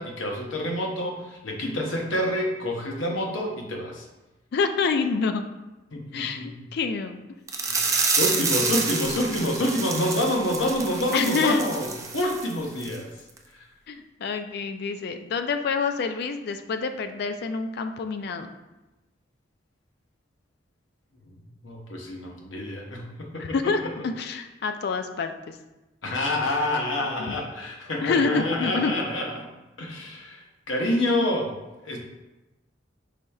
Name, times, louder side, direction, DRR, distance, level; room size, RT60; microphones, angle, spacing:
voice 1, 0.0-4.1 5.9-6.7 7.6-13.1 21.3-21.4 21.6-23.7 26.0-29.5 29.8-31.5 31.8-32.0, left 1 dB, 90° left, 1 dB, 0.8 m, -28 dB
voice 2, 4.5-5.4 6.1-7.2 11.1-11.6 13.9-18.5 23.5-25.3 27.2-27.3 28.0-28.9, left 4 dB, 60° left, 8 dB, 0.3 m, -27 dB
sound 1, 7.5-12.5 12.8-13.0 13.4-13.5, right 4 dB, 15° right, 0.3 m, -28 dB
4.9 x 4.1 x 2.3 m, 1.1 s
head